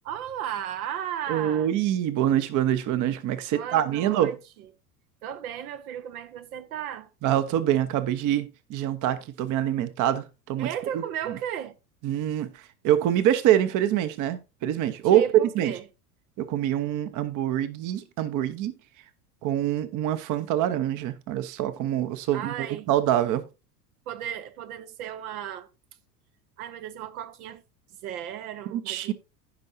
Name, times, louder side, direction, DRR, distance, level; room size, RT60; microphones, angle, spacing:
voice 1, 0.0-1.7 3.5-4.4 5.2-7.1 10.6-11.7 15.0-15.8 22.3-22.9 24.1-25.7 26.6-27.6 28.0-29.1, right 10 dB, 65° right, 1.0 m, -35 dB
voice 2, 1.3-4.3 7.2-10.7 10.9-11.0 11.3-11.4 12.0-15.3 15.5-15.7 16.4-18.7 19.4-23.4 28.7-29.1, right 11 dB, 40° right, 1.0 m, -25 dB
16.0 x 5.5 x 2.7 m
figure-of-eight pair, 80°, 48 cm